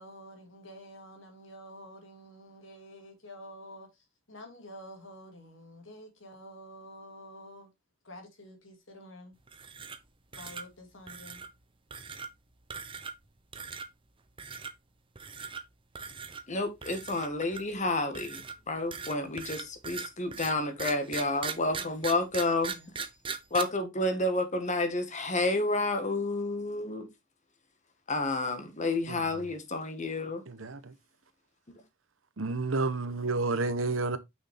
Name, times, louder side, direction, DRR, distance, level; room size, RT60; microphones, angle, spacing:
voice 1, 0.0-7.7 8.0-9.3 10.3-11.4 21.7-22.9, equal, 70° left, 2.5 m, -49 dB
sound 1, 9.5-10.1 10.3-10.6 11.1-11.5 11.9-12.3 12.7-13.2 13.5-13.9 14.4-14.7 15.1-15.6 15.9-16.4 16.8-17.7 18.1-23.6, right 5 dB, 25° right, 0.8 m, -39 dB
voice 2, 16.5-22.7 23.5-27.1 28.1-30.4, left 2 dB, 40° left, 1.5 m, -30 dB
voice 3, 30.5-30.9 32.4-34.2, right 3 dB, 90° right, 1.0 m, -30 dB
6.3 x 6.1 x 3.4 m
head